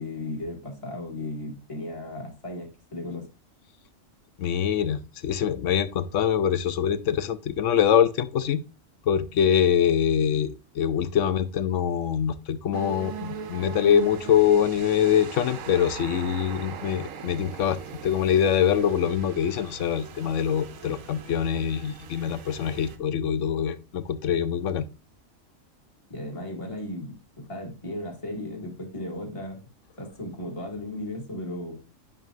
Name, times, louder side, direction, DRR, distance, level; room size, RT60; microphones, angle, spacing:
voice 1, 0.0-3.3 26.1-29.6 30.0-31.8, left 1 dB, 25° left, -2 dB, 2.3 m, -35 dB
voice 2, 4.4-8.6 9.1-24.8, left 8 dB, 70° left, 13 dB, 1.0 m, -24 dB
sound 1, 12.7-23.0, right 7 dB, 75° right, 1.2 m, -40 dB
10.5 x 3.7 x 2.5 m, 0.31 s
omnidirectional pair, 1.4 m